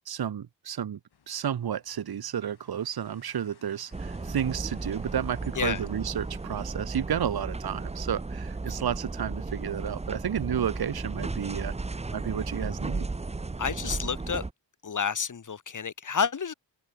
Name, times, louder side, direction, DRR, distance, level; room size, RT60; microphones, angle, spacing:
voice 1, 0.1-1.0 1.3-11.8 12.1-13.1, right 9 dB, 55° right, 1.3 m, -31 dB
sound 1, 1.1-6.7, left 7 dB, 60° left, 5.4 m, -61 dB
sound 2, 3.9-14.5, right 3 dB, 15° right, 0.8 m, -35 dB
voice 2, 13.6-14.4 14.8-16.5, left 6 dB, 40° left, 2.4 m, -30 dB
wide cardioid pair, 160°, 45 cm